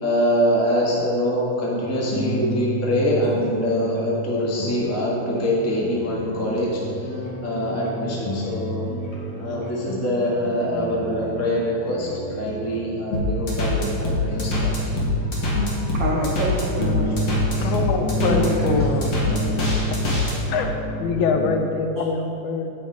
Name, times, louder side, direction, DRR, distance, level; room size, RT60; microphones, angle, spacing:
voice 1, 0.0-6.8 7.4-8.9 9.4-12.1 12.4-14.7, equal, 20° left, -5 dB, 0.4 m, -24 dB
sound 1, 1.8-21.7, right 1 dB, 60° left, 2.5 m, -30 dB
sound 2, 13.1-20.3, left 3 dB, 45° left, 2.0 m, -23 dB
voice 2, 15.9-17.1 17.5-17.7 18.2-18.9 19.3-19.4, right 1 dB, 80° right, -4 dB, 1.0 m, -26 dB
voice 3, 17.6-19.2 20.5-22.7, left 4 dB, 75° left, 5 dB, 2.0 m, -24 dB
9.1 x 7.0 x 4.9 m, 2.8 s
omnidirectional pair, 3.6 m